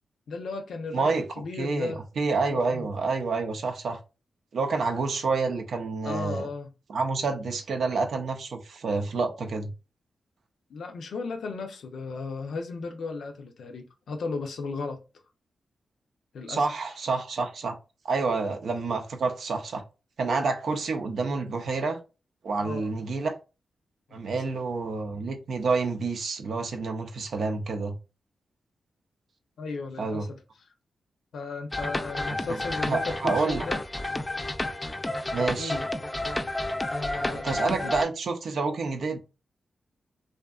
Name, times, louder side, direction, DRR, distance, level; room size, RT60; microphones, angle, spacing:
voice 1, 0.3-2.0 2.5-2.9 6.0-6.7 10.7-15.0 16.3-16.7 22.6-22.9 29.6-30.4 31.3-33.8 35.6-35.9 36.9-37.8, left 4 dB, 75° left, 0.5 m, -35 dB
voice 2, 0.9-1.3 1.5-4.0 4.5-6.5 6.9-9.7 16.5-17.8 18.0-19.8 20.2-22.0 22.4-23.3 24.1-28.0 30.0-30.3 32.5-32.6 32.9-33.6 35.3-35.8 37.3-39.2, right 4 dB, 70° right, 0.5 m, -28 dB
sound 1, 31.7-38.0, left 1 dB, 25° left, 0.4 m, -31 dB
2.6 x 2.4 x 2.3 m
supercardioid pair, 40°, 0 cm